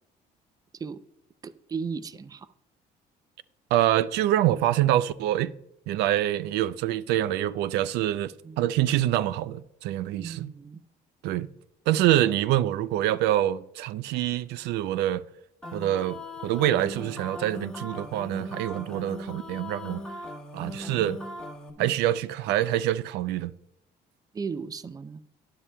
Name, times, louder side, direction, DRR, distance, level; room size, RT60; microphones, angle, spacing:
voice 1, 1.4-2.5 8.4-8.7 10.2-10.8 21.8-21.9 24.3-25.2, right 5 dB, 20° right, 0.4 m, -36 dB
voice 2, 3.7-5.5 5.9-10.5 11.2-11.5 11.9-15.2 15.7-16.2 16.4-20.0 20.5-21.2 21.8-23.5, right 13 dB, 85° right, 0.4 m, -25 dB
sound 1, 15.6-21.7, left 1 dB, 5° left, 1.3 m, -39 dB
12.0 x 10.0 x 2.2 m
cardioid pair, 110°, 17 cm